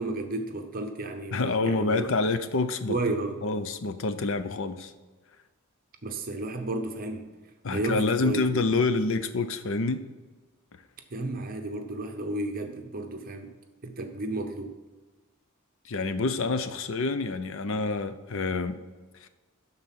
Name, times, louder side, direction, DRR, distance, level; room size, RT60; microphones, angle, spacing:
voice 1, 0.0-2.1 2.9-3.4 6.0-7.3 7.7-8.4 11.1-13.6 13.8-14.8, right 2 dB, 40° right, 5 dB, 0.8 m, -32 dB
voice 2, 1.3-3.0 3.4-4.9 7.6-10.0 15.8-18.8 19.2-19.3, left 3 dB, 65° left, 10 dB, 0.6 m, -27 dB
11.5 x 4.0 x 5.7 m, 1.3 s
head